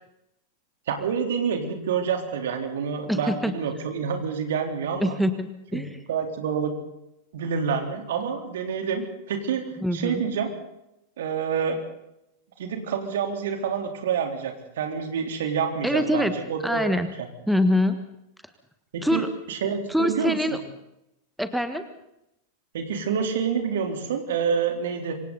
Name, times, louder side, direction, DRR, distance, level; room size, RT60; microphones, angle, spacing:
voice 1, 0.9-5.2 5.7-5.8 6.1-6.7 7.3-10.5 11.2-11.8 12.6-16.9 18.9-19.2 19.5-20.4 22.7-25.2, right 6 dB, 60° right, 4 dB, 3.7 m, -27 dB
voice 2, 3.1-3.5 5.0-6.0 9.8-10.2 15.8-16.3 16.6-17.1 17.5-18.0 19.0-19.3 19.9-20.6 21.4-21.8, equal, ahead, 9 dB, 1.5 m, -24 dB
27.0 x 24.5 x 4.1 m, 0.84 s
figure-of-eight pair, 90°, 0 cm